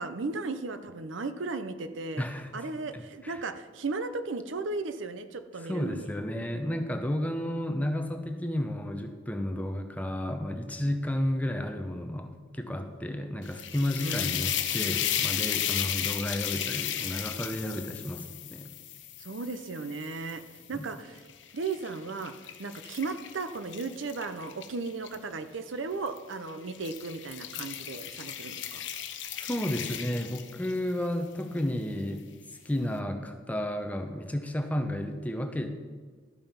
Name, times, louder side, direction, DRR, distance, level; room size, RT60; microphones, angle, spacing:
voice 1, 0.0-2.2 2.5-6.2 14.0-14.4 19.2-21.3 21.5-22.3 22.6-28.9, right 3 dB, 80° right, 9 dB, 0.7 m, -36 dB
voice 2, 2.2-2.5 2.9-3.4 5.6-18.2 18.5-18.7 20.7-20.9 29.4-32.3 32.6-35.7, left 1 dB, 10° left, 5 dB, 0.7 m, -32 dB
sound 1, 13.4-20.6 21.2-25.2 26.1-26.3 26.7-30.9, left 10 dB, 70° left, 0.7 m, -34 dB
12.5 x 5.4 x 5.7 m, 1.5 s
head